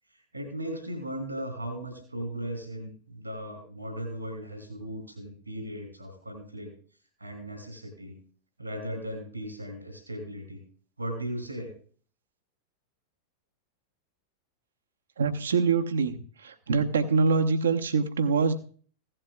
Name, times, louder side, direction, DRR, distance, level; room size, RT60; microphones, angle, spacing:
voice 1, 0.1-6.7 7.2-8.2 8.6-10.6 11.0-11.7, equal, 85° right, 4 dB, 2.7 m, -37 dB
voice 2, 15.2-16.2 16.4-18.5, right 4 dB, 65° right, 9 dB, 1.0 m, -24 dB
16.0 x 11.0 x 2.4 m, 0.44 s
figure-of-eight pair, 90°, 0 cm